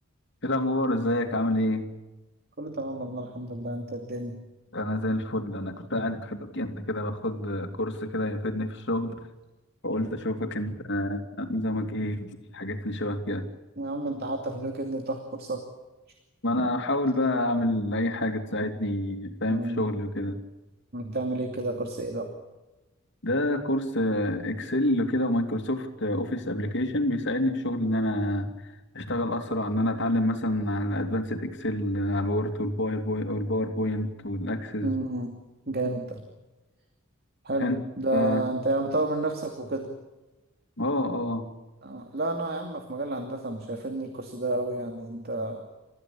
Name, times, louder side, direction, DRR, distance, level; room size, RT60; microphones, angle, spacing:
voice 1, 0.4-1.9 4.7-9.2 9.8-13.4 16.4-20.4 23.2-28.5 28.9-34.9 37.6-37.8 38.1-38.4 40.8-41.5, left 1 dB, 60° left, 6 dB, 2.8 m, -28 dB
voice 2, 2.6-4.4 13.8-15.6 19.5-19.9 20.9-22.3 34.8-35.3 35.7-36.2 37.4-39.9 41.8-45.6, right 2 dB, 50° right, 5 dB, 2.7 m, -31 dB
29.5 x 15.0 x 8.6 m, 1.1 s
head